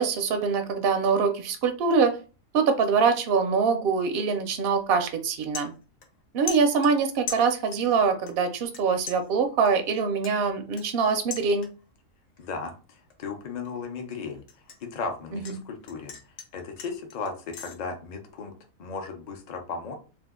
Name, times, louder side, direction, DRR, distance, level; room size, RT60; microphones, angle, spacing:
voice 1, 0.0-2.1 2.5-5.7 6.3-11.7 15.3-15.6, right 5 dB, 65° right, 6 dB, 0.6 m, -24 dB
sound 1, 4.8-4.9 5.2-6.2 6.5-8.0 8.3-8.8 9.1-12.0 12.4-12.7 13.1-15.6 15.9-17.8, left 6 dB, 65° left, 1.0 m, -40 dB
voice 2, 12.4-14.4 14.8-16.1 16.5-18.5 18.8-19.9, left 4 dB, 50° left, 4 dB, 0.5 m, -35 dB
2.7 x 2.3 x 3.5 m, 0.34 s
omnidirectional pair, 1.4 m